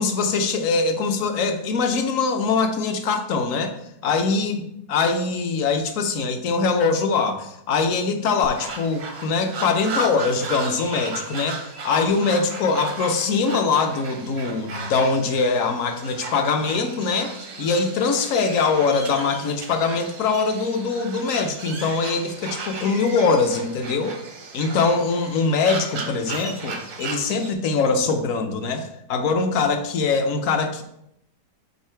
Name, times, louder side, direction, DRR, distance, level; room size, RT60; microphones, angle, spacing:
voice 1, 0.0-3.8 4.0-17.3 17.6-24.2 24.5-30.8, left 4 dB, 60° left, 7 dB, 0.9 m, -22 dB
sound 1, 8.4-27.5, right 4 dB, 55° right, 0.6 m, -35 dB
5.6 x 4.3 x 4.5 m, 0.77 s
omnidirectional pair, 1.9 m